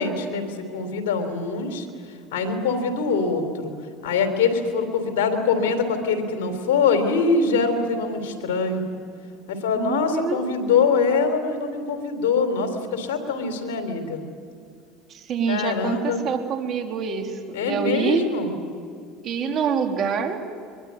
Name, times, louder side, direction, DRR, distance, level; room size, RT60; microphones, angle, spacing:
voice 1, 0.0-1.9 2.3-3.7 4.0-8.8 9.5-14.2 15.5-16.2 17.5-18.5, left 4 dB, 85° left, 7 dB, 3.7 m, -23 dB
voice 2, 9.8-10.4 15.1-18.3 19.2-20.4, right 6 dB, 45° right, 4 dB, 3.6 m, -26 dB
24.0 x 23.0 x 9.6 m, 2.4 s
supercardioid pair, 95°, 0 cm